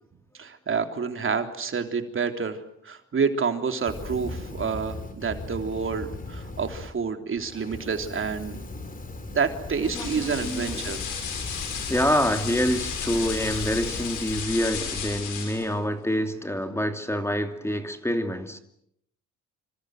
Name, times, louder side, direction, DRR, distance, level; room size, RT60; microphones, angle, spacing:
voice 1, 0.3-8.6 9.3-11.0, right 5 dB, 45° right, 3.4 m, -28 dB
Fire, 3.8-6.9 7.4-14.4, left 2 dB, 30° left, 4.5 m, -38 dB
sound 1, 9.8-15.7, left 7 dB, 80° left, 7.6 m, -33 dB
voice 2, 9.8-11.0 11.9-18.6, equal, 10° left, 2.6 m, -27 dB
27.0 x 26.0 x 7.8 m
cardioid pair, 90°, 30 cm